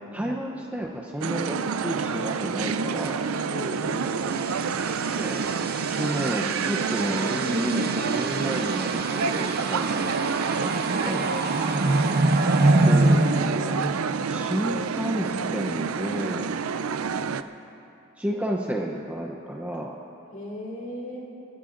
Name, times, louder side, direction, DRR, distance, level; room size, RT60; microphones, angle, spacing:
voice 1, 0.1-3.2 4.7-5.4 5.9-10.0 10.6-10.7 11.0-11.5 12.7-16.5 18.2-20.0, equal, 5° right, -1 dB, 0.7 m, -31 dB
sound 1, 1.2-17.4, right 5 dB, 80° right, 0.5 m, -28 dB
voice 2, 3.5-4.4 10.0-10.3 11.8-12.2 20.3-21.2, left 1 dB, 40° left, -4 dB, 3.7 m, -37 dB
sound 2, 3.8-14.5, right 2 dB, 50° right, 0.8 m, -26 dB
29.5 x 15.5 x 2.6 m, 2.8 s
head